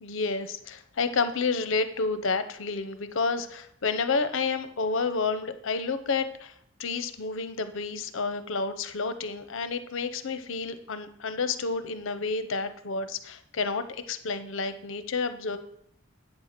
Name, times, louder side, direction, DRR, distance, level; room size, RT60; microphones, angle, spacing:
voice 1, 0.0-6.5 6.8-15.6, left 4 dB, 65° left, 11 dB, 0.6 m, -30 dB
8.2 x 4.6 x 6.5 m, 0.70 s
head